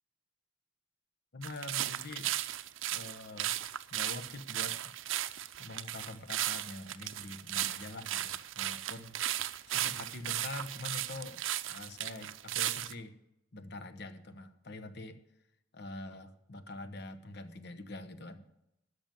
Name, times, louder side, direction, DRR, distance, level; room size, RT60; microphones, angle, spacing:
voice 1, 1.3-2.3 2.9-3.6 3.9-4.8 5.6-9.2 9.7-11.4 11.7-13.1 13.5-15.2 15.7-18.5, left 2 dB, 55° left, 9 dB, 1.0 m, -45 dB
sound 1, 1.4-12.9, right 13 dB, 75° right, 0.5 m, -36 dB
13.0 x 6.0 x 9.1 m, 0.85 s
head